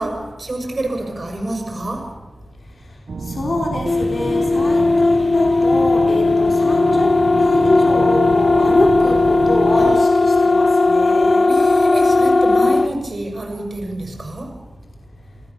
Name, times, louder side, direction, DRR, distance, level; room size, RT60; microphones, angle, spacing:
voice 1, 0.0-2.1 9.7-10.3 11.5-14.5, right 1 dB, 40° right, 6.1 m, -28 dB
sound 1, 3.1-10.0, right 4 dB, 80° right, 1.2 m, -28 dB
voice 2, 3.3-7.1 7.4-11.5, left 2 dB, 55° left, 4.9 m, -24 dB
sound 2, 3.9-12.9, left 3 dB, 30° left, 0.7 m, -16 dB
28.0 x 19.0 x 7.1 m
wide cardioid pair, 110°, 0 cm